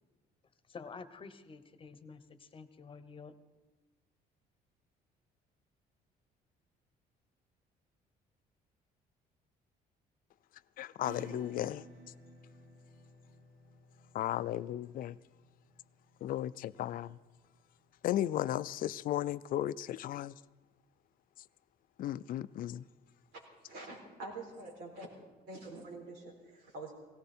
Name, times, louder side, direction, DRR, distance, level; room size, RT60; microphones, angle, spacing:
voice 1, 0.7-3.3, left 5 dB, 30° left, 1.0 m, -49 dB
voice 2, 10.8-11.9 14.1-15.2 16.2-17.2 18.0-20.4 22.0-22.8, left 12 dB, 55° left, 0.4 m, -35 dB
Acoustic guitar / Strum, 11.0-18.2, right 1 dB, 75° right, 2.3 m, -55 dB
voice 3, 23.7-25.1 25.5-26.9, right 2 dB, 90° right, 4.3 m, -46 dB
17.5 x 16.5 x 4.3 m
cardioid pair, 110°, 17 cm